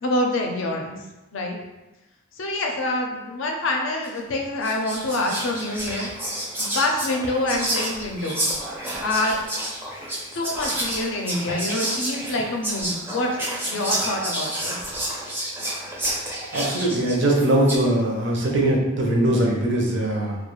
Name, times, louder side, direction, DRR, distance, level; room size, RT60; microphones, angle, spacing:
voice 1, 0.0-1.0 1.3-1.6 2.4-6.1 6.6-8.6 9.0-9.4 10.0-10.1 10.3-14.7, left 1 dB, 70° left, 1 dB, 0.4 m, -26 dB
Whispering, 4.0-4.3 4.6-17.9, right 1 dB, 10° right, 0.4 m, -30 dB
voice 2, 16.5-20.4, right 1 dB, 60° right, -1 dB, 0.6 m, -21 dB
2.3 x 2.2 x 3.0 m, 1.0 s
head